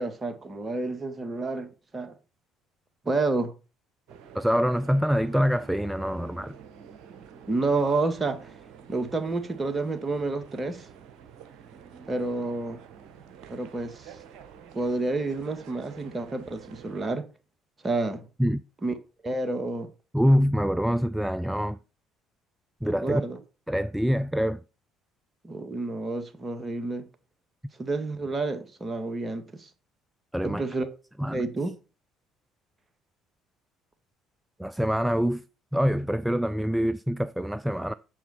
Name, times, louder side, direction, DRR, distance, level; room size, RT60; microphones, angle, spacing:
voice 1, 0.0-2.1 3.0-3.5 7.4-8.6 8.9-10.9 12.1-12.8 13.5-14.2 14.7-17.3 17.8-18.3 18.8-18.9 19.2-19.9 23.0-23.4 25.4-27.1 27.8-29.7 30.4-30.9 31.3-31.7, right 3 dB, 25° right, 2.0 m, -29 dB
sound 1, 4.1-17.1, right 7 dB, 55° right, 1.2 m, -49 dB
voice 2, 4.3-6.5 18.4-18.6 20.1-21.8 22.8-23.2 23.7-24.6 30.3-30.6 31.2-31.4 34.6-35.4 35.7-37.9, equal, 5° right, 0.4 m, -25 dB
9.1 x 7.3 x 4.4 m
figure-of-eight pair, 50°, 0 cm